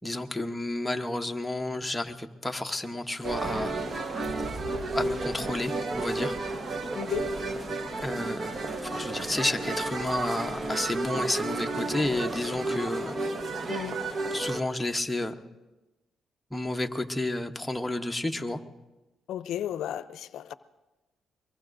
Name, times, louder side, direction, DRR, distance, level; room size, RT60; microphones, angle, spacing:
voice 1, 0.0-3.8 4.9-6.4 8.0-13.2 14.3-15.3 16.5-18.6, left 1 dB, 5° left, 4 dB, 0.9 m, -31 dB
sound 1, 3.2-14.6, right 2 dB, 40° right, 1.1 m, -32 dB
voice 2, 6.9-7.3 13.7-14.0 19.3-20.5, left 11 dB, 75° left, 14 dB, 0.5 m, -33 dB
23.5 x 21.5 x 2.6 m, 1.1 s
cardioid pair, 90°, 0 cm